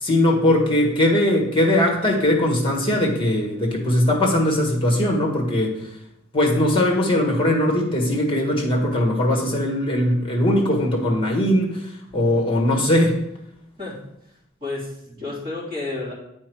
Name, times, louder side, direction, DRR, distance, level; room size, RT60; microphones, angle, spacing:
voice 1, 0.0-5.8 6.3-13.2, left 1 dB, 25° left, 0 dB, 1.5 m, -20 dB
voice 2, 14.6-16.1, left 2 dB, 25° right, -6 dB, 2.9 m, -31 dB
8.4 x 4.4 x 4.7 m, 0.79 s
head